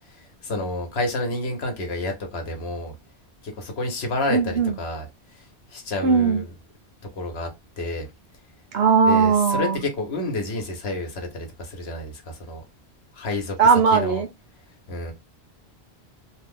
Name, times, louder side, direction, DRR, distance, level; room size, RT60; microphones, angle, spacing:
voice 1, 0.0-2.9 3.4-6.5 7.2-7.5 7.8-8.1 9.1-12.6 13.1-13.6 13.9-14.2 14.9-15.1, left 2 dB, 75° left, 1.2 m, -30 dB
voice 2, 4.3-4.8 6.0-6.4 8.7-9.8 13.6-14.3, right 5 dB, 70° right, 0.9 m, -18 dB
2.7 x 2.4 x 3.5 m
omnidirectional pair, 1.1 m